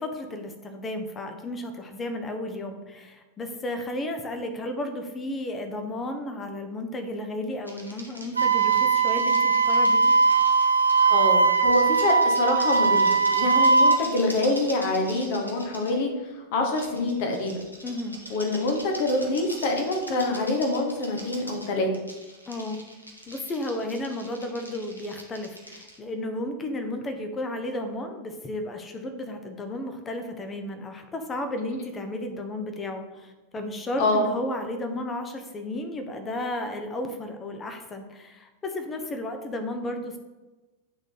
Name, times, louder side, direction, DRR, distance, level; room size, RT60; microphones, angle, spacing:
voice 1, 0.0-10.1 17.8-18.2 22.5-22.8 23.3-40.2, left 1 dB, 20° left, 6 dB, 1.0 m, -33 dB
sound 1, 7.7-11.1 11.5-15.9 16.8-26.0, equal, 85° left, 1.1 m, -42 dB
Wind instrument woodwind instrument, 8.4-14.0, right 4 dB, 80° right, 0.5 m, -20 dB
voice 2, 11.1-16.1 16.5-17.6 18.3-22.0 34.0-34.3, left 2 dB, 50° left, 3 dB, 1.3 m, -26 dB
8.8 x 3.8 x 4.0 m, 1.1 s
figure-of-eight pair, 90°, 0 cm